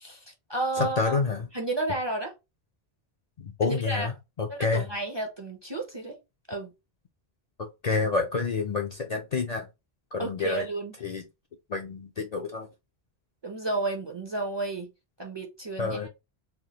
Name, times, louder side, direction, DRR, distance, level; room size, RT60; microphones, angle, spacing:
voice 1, 0.0-1.2 1.5-2.3 3.6-4.1 4.5-6.2 6.5-6.7 10.2-10.9 13.4-14.9 15.2-16.1, right 2 dB, 35° right, 0.5 m, -32 dB
voice 2, 0.8-1.5 3.4-4.8 7.8-9.7 10.1-10.6 11.0-11.2 11.7-12.7 15.8-16.1, left 4 dB, 55° left, 0.5 m, -28 dB
3.4 x 2.1 x 2.8 m
omnidirectional pair, 1.1 m